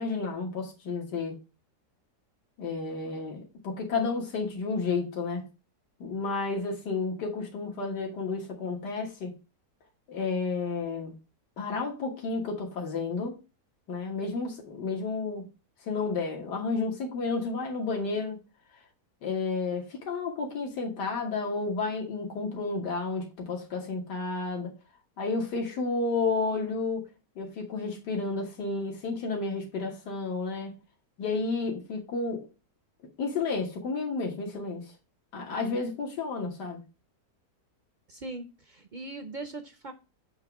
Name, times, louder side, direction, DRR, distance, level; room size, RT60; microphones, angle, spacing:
voice 1, 0.0-1.3 2.6-5.4 6.0-9.3 10.1-11.1 11.6-13.4 13.9-15.4 15.8-18.4 19.2-24.7 25.2-27.0 27.4-30.7 31.2-32.5 33.2-34.9 35.3-36.8, left 4 dB, 90° left, 2.0 m, -31 dB
voice 2, 38.1-39.9, right 2 dB, 60° right, 0.5 m, -40 dB
7.8 x 3.0 x 5.8 m
omnidirectional pair, 1.7 m